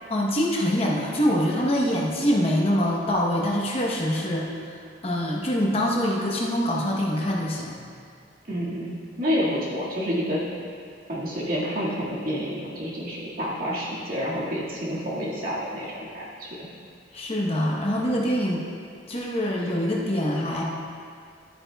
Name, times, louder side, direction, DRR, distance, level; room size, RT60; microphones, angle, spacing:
voice 1, 0.1-4.6 5.0-7.8 17.1-18.6 19.1-20.6, equal, 30° left, -3 dB, 0.9 m, -24 dB
voice 2, 8.5-10.6 11.1-16.6, equal, 50° right, -6 dB, 1.8 m, -29 dB
12.5 x 8.7 x 2.3 m, 2.2 s
head